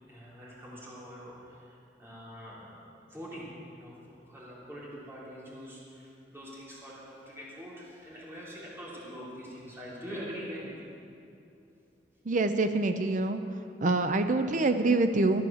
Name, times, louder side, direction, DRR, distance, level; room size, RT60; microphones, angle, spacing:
voice 1, 0.1-3.9 4.3-10.9, equal, 15° right, -7 dB, 3.8 m, -44 dB
voice 2, 12.3-13.4 13.8-15.4, right 2 dB, 45° right, 8 dB, 0.6 m, -25 dB
13.5 x 11.0 x 7.2 m, 2.6 s
head